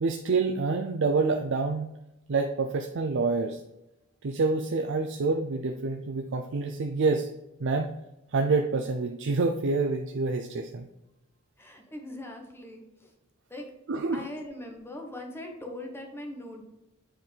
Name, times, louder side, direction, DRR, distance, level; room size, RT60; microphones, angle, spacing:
voice 1, 0.0-1.9 2.3-3.6 4.2-7.3 7.6-7.9 8.3-10.9 13.9-14.2, right 3 dB, 60° right, 5 dB, 0.5 m, -27 dB
voice 2, 11.6-13.1 13.5-13.7 14.1-16.6, left 1 dB, 10° left, 2 dB, 1.1 m, -41 dB
7.8 x 4.6 x 3.3 m, 0.90 s
head